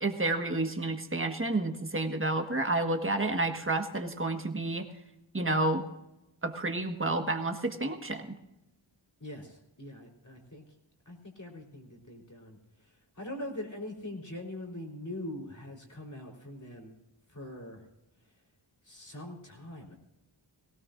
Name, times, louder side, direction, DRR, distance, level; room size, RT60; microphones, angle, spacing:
voice 1, 0.0-4.9 5.3-5.8 6.4-8.3, right 2 dB, 25° right, 5 dB, 1.5 m, -30 dB
voice 2, 9.2-10.6 11.1-12.6 13.2-16.9 17.3-17.8 18.9-20.0, left 1 dB, 40° left, 0 dB, 3.9 m, -42 dB
19.0 x 17.0 x 2.6 m, 0.91 s
wide cardioid pair, 50°, 46 cm